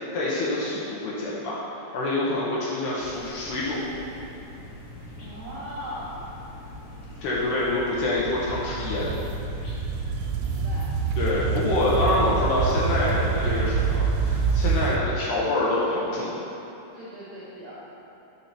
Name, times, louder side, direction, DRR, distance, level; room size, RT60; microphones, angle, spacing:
voice 1, 0.1-3.8 7.2-9.1 11.2-16.3, left 2 dB, 75° left, -7 dB, 2.7 m, -26 dB
sound 1, 3.0-14.8, equal, 55° left, 3.1 m, -39 dB
voice 2, 5.2-6.3 10.4-10.9 16.9-17.7, equal, 70° right, -12 dB, 2.0 m, -39 dB
sound 2, 8.2-15.0, right 5 dB, 90° right, 3.1 m, -26 dB
9.9 x 7.0 x 2.9 m, 2.8 s
omnidirectional pair, 5.5 m